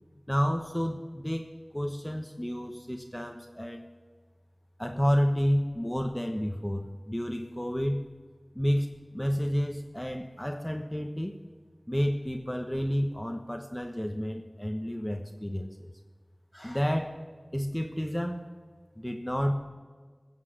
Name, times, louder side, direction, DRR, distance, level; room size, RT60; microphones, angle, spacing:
voice 1, 0.3-1.5 1.7-3.8 4.8-8.0 8.5-11.4 11.9-15.9 16.5-17.2 17.5-18.5 19.0-19.5, equal, 10° left, 4 dB, 1.1 m, -30 dB
15.0 x 7.4 x 7.4 m, 1.5 s
wide cardioid pair, 40°, 0 cm